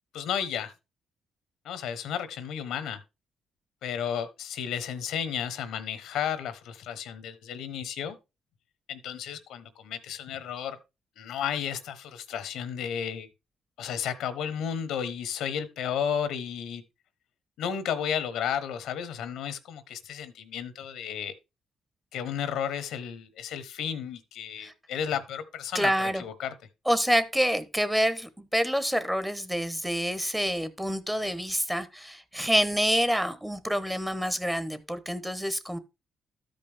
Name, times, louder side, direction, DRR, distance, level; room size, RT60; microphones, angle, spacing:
voice 1, 0.1-0.7 1.6-3.0 3.8-8.2 8.9-10.8 11.2-13.3 13.8-16.8 17.6-21.3 22.1-26.5, left 8 dB, 85° left, 1.1 m, -33 dB
voice 2, 25.7-26.2 26.9-35.8, equal, 5° right, 1.0 m, -27 dB
13.0 x 5.3 x 3.5 m
cardioid pair, 90°, 0 cm